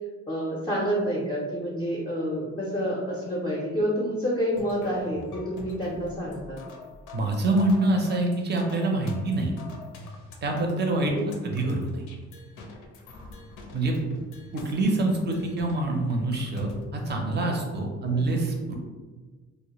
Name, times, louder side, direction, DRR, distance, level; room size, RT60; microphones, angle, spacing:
voice 1, 0.3-6.6 11.1-11.4 18.1-18.3, equal, 20° left, -4 dB, 0.5 m, -28 dB
sound 1, 4.5-17.6, left 2 dB, 90° left, 0.5 m, -44 dB
voice 2, 7.1-9.5 10.4-11.1 11.4-12.0 13.7-14.0 14.5-18.8, right 2 dB, 35° right, 1 dB, 0.5 m, -26 dB
2.1 x 2.0 x 2.9 m, 1.4 s
cardioid pair, 90°, 30 cm